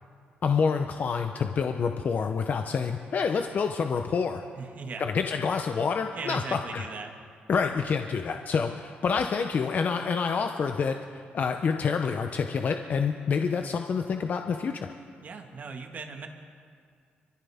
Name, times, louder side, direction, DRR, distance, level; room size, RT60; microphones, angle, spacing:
voice 1, 0.4-4.4 5.0-6.8 7.5-14.9, left 5 dB, 55° left, 5 dB, 0.8 m, -27 dB
voice 2, 4.5-5.0 6.2-7.1 15.2-16.3, right 4 dB, 50° right, 3 dB, 1.8 m, -38 dB
24.0 x 14.5 x 3.6 m, 2.2 s
cardioid pair, 85°, 4 cm